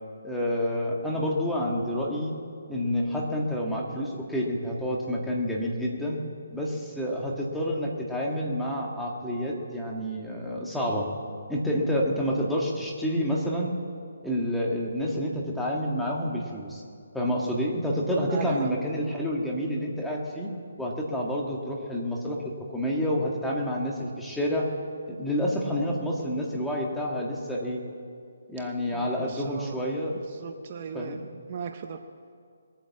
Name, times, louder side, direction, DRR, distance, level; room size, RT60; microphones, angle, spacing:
voice 1, 0.2-2.3 2.7-6.2 6.5-11.1 11.5-13.7 14.2-16.8 17.1-20.5 20.8-24.7 25.2-27.8 28.5-30.2 30.9-31.2, equal, ahead, -3 dB, 1.9 m, -28 dB
voice 2, 18.3-18.7 28.6-28.7 28.9-29.9 30.3-31.2 31.5-32.0, right 7 dB, 40° right, 7 dB, 0.8 m, -38 dB
21.0 x 9.0 x 7.3 m, 2.3 s
hypercardioid pair, 155°, 0 cm